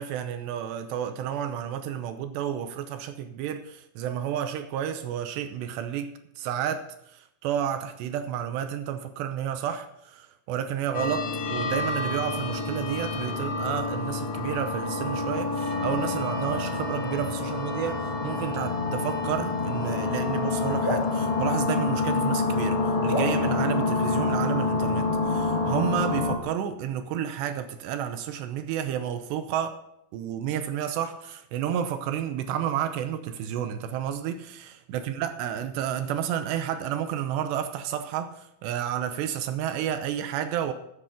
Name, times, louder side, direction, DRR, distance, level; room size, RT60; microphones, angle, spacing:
voice 1, 0.0-29.8 30.1-40.7, right 9 dB, 80° right, 2.7 m, -31 dB
sound 1, 10.9-26.4, left 3 dB, 75° left, 1.3 m, -27 dB
sound 2, 20.8-22.5 23.1-24.8, equal, 15° left, 1.0 m, -35 dB
13.5 x 8.0 x 5.4 m
omnidirectional pair, 5.4 m